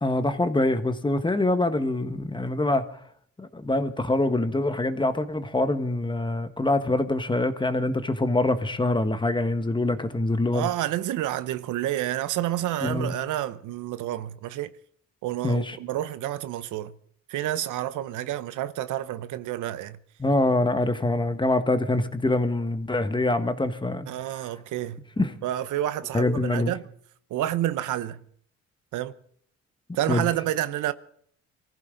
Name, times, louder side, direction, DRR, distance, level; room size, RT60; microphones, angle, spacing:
voice 1, 0.0-2.8 3.4-10.7 12.8-13.1 15.4-15.8 20.2-24.1 25.2-25.3 26.1-26.7 30.1-30.3, left 2 dB, 15° left, 1.4 m, -24 dB
voice 2, 10.5-14.7 15.2-16.9 17.3-20.0 24.1-25.0 25.4-26.8 27.3-28.2 28.9-29.1 30.0-30.9, right 13 dB, 85° right, 0.8 m, -29 dB
24.0 x 15.0 x 3.9 m
cardioid pair, 90°, 30 cm